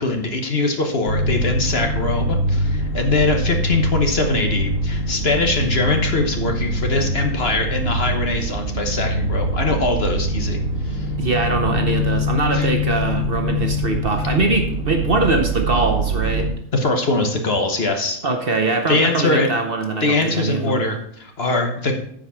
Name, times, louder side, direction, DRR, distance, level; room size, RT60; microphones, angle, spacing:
voice 1, 0.0-10.6 10.8-11.1 12.5-12.7 16.7-18.2 18.9-19.5 20.0-22.0, left 3 dB, 45° left, 4 dB, 1.3 m, -22 dB
sound 1, 1.0-16.5, equal, 70° right, 1.6 m, -23 dB
voice 2, 11.2-16.5 18.2-20.8, right 3 dB, 45° right, 4 dB, 1.0 m, -22 dB
9.3 x 5.2 x 5.7 m, 0.67 s
omnidirectional pair, 1.5 m